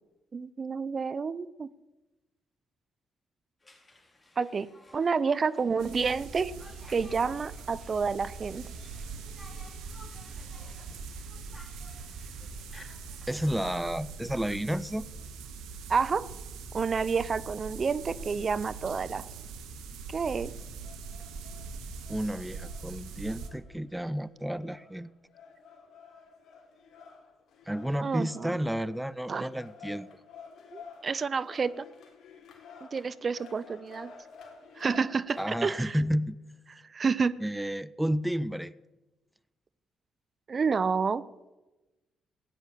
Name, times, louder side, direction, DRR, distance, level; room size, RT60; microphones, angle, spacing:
voice 1, 0.3-1.7 4.4-4.7 4.9-6.5 6.9-8.7 15.9-16.3 16.7-19.2 20.1-20.5 28.0-28.5 29.3-29.5 30.7-31.9 32.9-34.1 34.8-36.0 36.9-37.4 40.5-41.2, right 5 dB, 45° right, 0.6 m, -29 dB
Conversation, 3.6-13.3, left 2 dB, 20° left, 4.4 m, -56 dB
sound 1, 5.8-23.5, right 5 dB, 80° right, 1.9 m, -42 dB
voice 2, 13.3-15.1 22.1-25.1 27.7-30.2 35.4-36.4 37.4-38.7, equal, 5° right, 0.7 m, -31 dB
sound 2, 20.8-35.7, left 5 dB, 65° left, 3.7 m, -51 dB
16.5 x 10.0 x 8.5 m
supercardioid pair, 55°, 0 cm